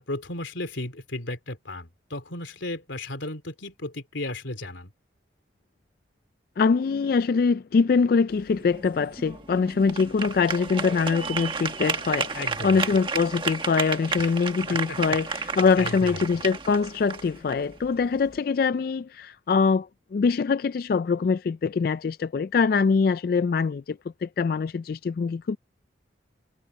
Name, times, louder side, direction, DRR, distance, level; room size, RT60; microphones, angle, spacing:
voice 1, 0.0-4.9 12.3-12.8 14.2-14.3 14.7-16.4, left 2 dB, 90° left, 3.3 m, -35 dB
voice 2, 6.6-15.3 15.6-25.6, left 5 dB, 50° left, 0.3 m, -23 dB
sound 1, 8.3-18.4, right 4 dB, 25° right, 1.6 m, -32 dB
head